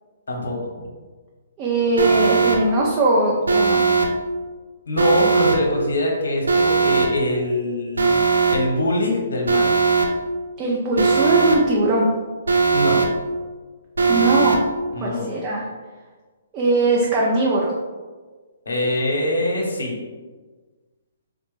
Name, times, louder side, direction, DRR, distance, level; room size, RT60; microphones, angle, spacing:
voice 1, 0.3-0.6 4.9-8.2 8.5-9.7 12.7-13.0 14.9-15.3 18.7-19.9, left 1 dB, 75° left, 0 dB, 0.8 m, -23 dB
voice 2, 1.6-3.8 10.6-12.1 14.1-14.6 15.0-15.6 16.5-17.7, right 2 dB, 30° right, -4 dB, 0.5 m, -20 dB
Alarm, 2.0-2.6 3.5-4.1 5.0-5.6 6.5-7.1 8.0-8.6 9.5-10.1 11.0-11.6 12.5-13.1 14.0-14.6, right 4 dB, 90° right, 0.5 m, -18 dB
3.9 x 2.1 x 3.1 m, 1.4 s
hypercardioid pair, 135°, 0 cm